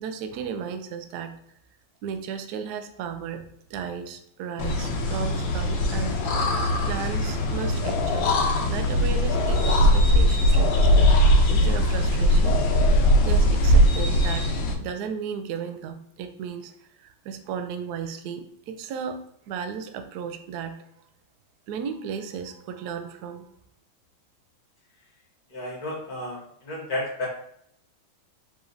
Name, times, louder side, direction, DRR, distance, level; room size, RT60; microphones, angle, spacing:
voice 1, 0.0-1.3 2.0-6.2 6.9-8.3 8.7-11.1 11.5-14.5 14.8-16.7 17.0-20.8 21.7-23.5, right 7 dB, 80° right, 8 dB, 0.9 m, -35 dB
sound 1, 4.6-14.7, equal, 70° left, 1.3 m, -20 dB
voice 2, 25.5-27.3, left 1 dB, 50° left, -3 dB, 1.7 m, -32 dB
4.8 x 4.2 x 2.6 m, 0.69 s
omnidirectional pair, 2.3 m